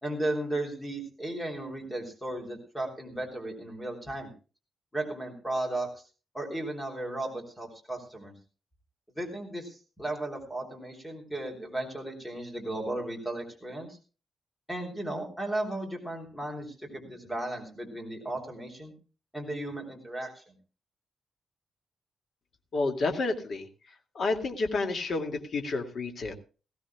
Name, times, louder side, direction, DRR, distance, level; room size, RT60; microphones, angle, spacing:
voice 1, 0.0-4.3 4.9-6.0 6.3-8.3 9.1-14.0 14.7-18.9 19.3-20.4, right 1 dB, 5° left, 2 dB, 3.4 m, -35 dB
voice 2, 22.7-23.7 24.1-26.3, left 3 dB, 50° left, 4 dB, 2.4 m, -30 dB
19.5 x 16.0 x 2.3 m, 0.34 s
wide cardioid pair, 165°, 0 cm